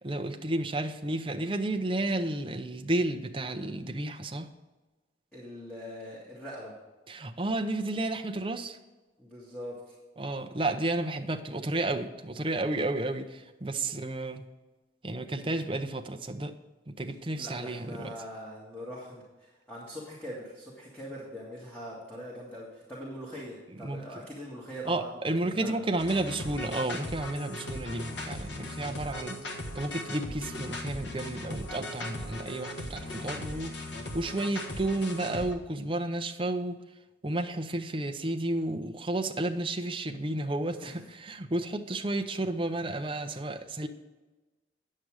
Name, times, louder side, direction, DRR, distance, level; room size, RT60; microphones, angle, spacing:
voice 1, 0.0-4.5 7.1-8.8 10.2-14.4 15.0-16.5 16.9-18.1 23.8-24.0 24.9-29.4 29.7-36.8 37.2-43.9, right 2 dB, 30° right, 5 dB, 0.6 m, -32 dB
voice 2, 5.3-6.7 9.2-10.0 17.4-25.8 40.7-41.1, equal, 5° left, -6 dB, 1.9 m, -42 dB
sound 1, 26.0-35.5, left 1 dB, 75° left, 1.4 m, -38 dB
9.5 x 7.6 x 4.8 m, 1.2 s
head